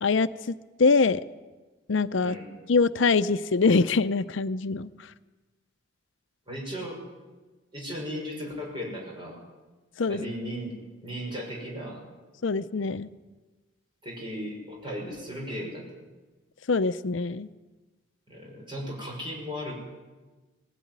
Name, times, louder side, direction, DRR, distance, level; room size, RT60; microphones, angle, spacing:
voice 1, 0.0-1.2 1.9-2.4 2.7-4.9 10.0-10.2 12.4-13.1 16.7-17.5, left 4 dB, 75° left, 13 dB, 0.6 m, -24 dB
voice 2, 6.5-7.0 7.7-9.4 10.0-10.8 11.0-12.0 14.0-15.8 18.3-19.7, equal, 25° right, -1 dB, 6.4 m, -36 dB
19.5 x 16.5 x 9.5 m, 1.2 s
head